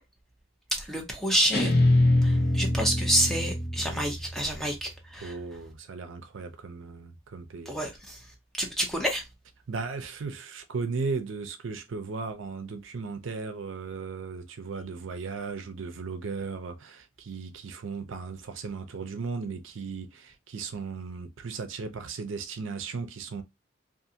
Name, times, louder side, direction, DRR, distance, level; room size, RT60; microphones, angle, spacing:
voice 1, 0.7-1.7 2.2-5.3 7.7-8.2 8.6-9.2, right 1 dB, ahead, 0.6 m, -28 dB
Guitar, 1.5-4.7, left 1 dB, 50° left, 0.8 m, -24 dB
voice 2, 5.2-7.7 9.7-23.4, right 4 dB, 65° right, 0.5 m, -36 dB
2.5 x 2.5 x 2.7 m
head